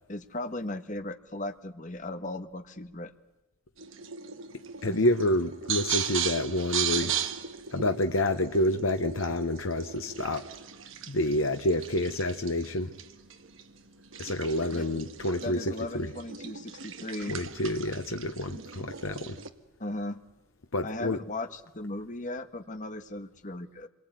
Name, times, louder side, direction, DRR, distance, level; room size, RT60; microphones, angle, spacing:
voice 1, 0.1-3.1 4.9-5.0 14.7-14.8 15.4-17.4 19.8-20.2 20.8-23.9, left 2 dB, 35° left, 1.6 m, -37 dB
sound 1, 3.8-19.5, right 8 dB, 70° right, 1.7 m, -37 dB
voice 2, 4.8-7.1 7.7-10.5 11.1-12.9 14.2-16.1 17.3-19.4 20.7-21.2, left 1 dB, 80° left, 1.3 m, -28 dB
27.5 x 23.0 x 9.4 m
head